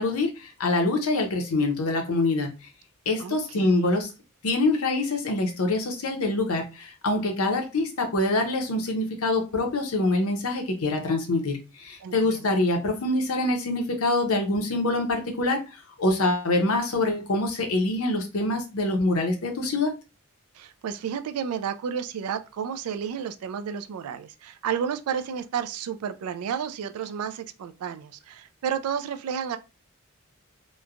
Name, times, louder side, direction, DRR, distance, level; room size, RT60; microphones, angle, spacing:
voice 1, 0.0-2.5 3.1-4.1 4.4-19.9, left 2 dB, 75° left, 0.7 m, -25 dB
voice 2, 3.2-3.7 12.0-12.5 20.5-29.6, right 7 dB, 85° right, 0.3 m, -31 dB
3.0 x 2.1 x 2.4 m
head